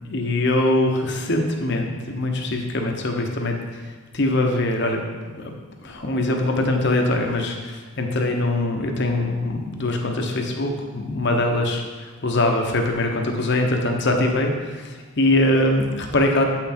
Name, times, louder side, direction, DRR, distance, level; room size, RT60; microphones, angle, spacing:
voice 1, 0.1-3.6 3.8-5.5 5.8-16.4, left 1 dB, 50° left, 3 dB, 0.9 m, -22 dB
7.6 x 5.9 x 4.3 m, 1.4 s
head